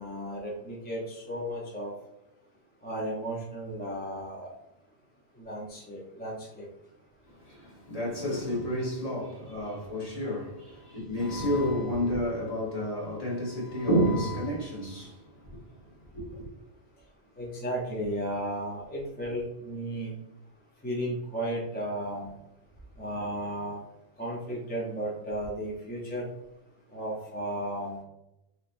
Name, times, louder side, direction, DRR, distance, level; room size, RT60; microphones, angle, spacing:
voice 1, 0.0-1.9 2.8-4.5 5.3-6.7 17.4-20.1 20.8-22.3 23.0-23.8 24.2-26.3 26.9-28.0, right 1 dB, 10° left, 0.7 m, -34 dB
voice 2, 7.4-15.5 16.1-16.5, equal, 35° left, 1.4 m, -30 dB
4.0 x 3.0 x 2.6 m
omnidirectional pair, 1.1 m